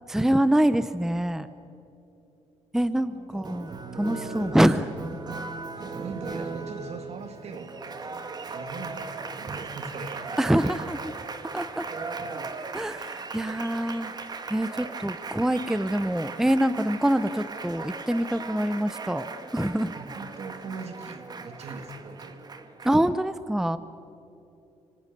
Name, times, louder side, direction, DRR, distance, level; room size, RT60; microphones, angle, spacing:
voice 1, 0.1-1.5 2.7-3.7 4.0-4.9 10.4-11.0 11.5-11.9 12.7-14.2 14.5-19.9 22.8-23.8, right 1 dB, 5° right, 14 dB, 0.6 m, -25 dB
voice 2, 3.0-3.6 4.4-4.5 5.7-11.4 13.4-13.5 19.9-22.4, right 4 dB, 60° right, 8 dB, 2.2 m, -41 dB
Applause, 3.4-23.1, right 4 dB, 35° right, 1.5 m, -38 dB
26.0 x 25.0 x 6.7 m, 2.9 s
cardioid pair, 130°, 12 cm